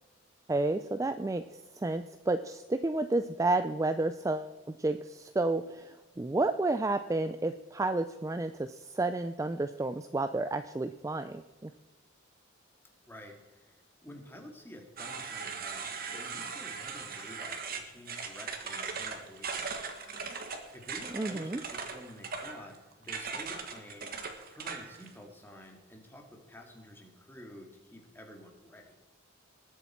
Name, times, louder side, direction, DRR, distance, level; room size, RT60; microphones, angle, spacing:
voice 1, 0.5-11.7 21.1-21.6, right 2 dB, 15° right, 10 dB, 0.3 m, -31 dB
voice 2, 13.1-19.6 20.7-24.1 24.5-29.0, left 1 dB, 10° left, 2 dB, 2.1 m, -50 dB
sound 1, 15.0-25.1, right 5 dB, 45° right, 1.6 m, -39 dB
20.0 x 8.1 x 4.4 m, 1.1 s
head